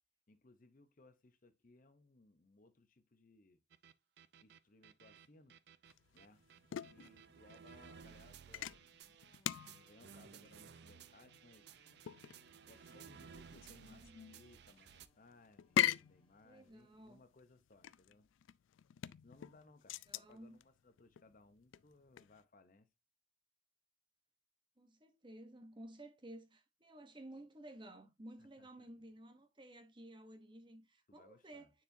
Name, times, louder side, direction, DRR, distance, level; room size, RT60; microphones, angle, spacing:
voice 1, 0.3-3.6 4.4-5.6 6.1-6.4 6.8-9.0 9.3-11.7 12.7-18.3 19.2-22.9 28.4-28.9 31.1-31.7, left 2 dB, 40° left, 0.7 m, -65 dB
sound 1, 3.7-15.1, right 7 dB, 55° right, 0.4 m, -58 dB
sound 2, 5.9-22.4, left 11 dB, 75° left, 0.3 m, -43 dB
sound 3, 9.0-16.7, left 1 dB, 25° left, 1.7 m, -78 dB
voice 2, 13.8-14.2 16.4-17.2 20.1-20.6 24.8-31.7, right 1 dB, 25° right, 0.9 m, -54 dB
9.6 x 4.5 x 2.6 m
head